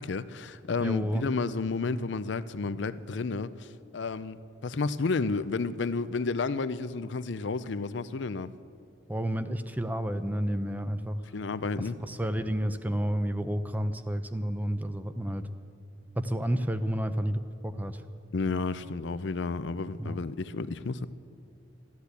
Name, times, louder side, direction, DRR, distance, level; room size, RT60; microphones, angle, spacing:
voice 1, 0.0-8.5 11.3-12.0 18.3-21.1, left 4 dB, 70° left, 14 dB, 0.5 m, -31 dB
voice 2, 0.8-1.3 9.1-11.2 12.0-15.4 16.2-18.0 20.0-20.2, equal, 10° right, 10 dB, 0.6 m, -30 dB
13.5 x 12.0 x 8.2 m, 2.4 s
head